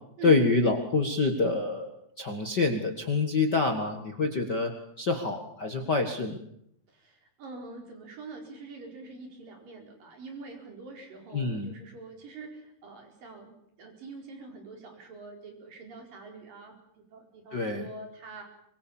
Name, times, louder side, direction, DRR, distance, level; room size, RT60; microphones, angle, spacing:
voice 1, 0.2-1.9 2.2-6.4 11.3-11.7 17.5-17.9, left 3 dB, 65° left, 4 dB, 1.0 m, -26 dB
voice 2, 6.9-13.5 13.8-18.4, right 3 dB, 50° right, 3 dB, 6.1 m, -45 dB
25.0 x 23.5 x 7.2 m, 0.74 s
omnidirectional pair, 5.1 m